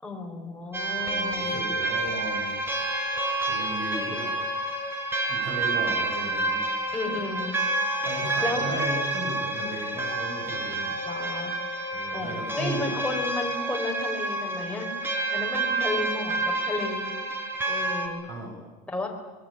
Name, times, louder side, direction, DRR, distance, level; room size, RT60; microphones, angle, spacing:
voice 1, 0.0-1.6 6.9-7.5 8.4-8.7 9.5-9.8 11.0-11.5 12.1-14.9 15.3-17.1 17.7-18.3 18.9-19.1, left 2 dB, 5° left, 0 dB, 4.5 m, -33 dB
sound 1, 0.7-18.1, right 2 dB, 10° right, 4.6 m, -29 dB
voice 2, 0.9-2.5 3.5-4.3 5.3-6.6 8.0-11.0 11.9-12.9 18.2-18.5, right 2 dB, 50° right, 1 dB, 6.8 m, -36 dB
25.5 x 21.5 x 8.8 m, 1.2 s
supercardioid pair, 140°, 21 cm